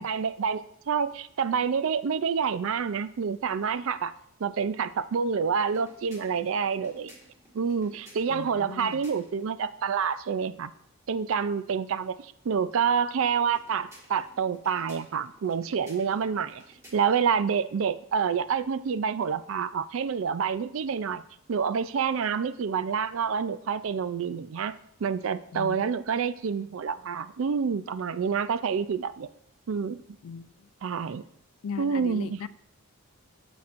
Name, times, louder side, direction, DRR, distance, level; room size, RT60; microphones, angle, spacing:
voice 1, 0.0-4.1 4.4-7.1 7.5-10.7 11.1-16.6 16.9-21.2 21.5-24.7 25.0-29.3 29.7-30.0 30.8-31.2 31.8-32.5, right 6 dB, 65° right, 0.4 m, -28 dB
sound 1, 5.6-9.5 13.4-17.3, equal, 15° right, 1.7 m, -55 dB
voice 2, 8.3-9.1 25.5-26.0 30.2-30.7 31.6-32.5, left 6 dB, 75° left, 0.3 m, -38 dB
10.5 x 7.1 x 2.5 m
head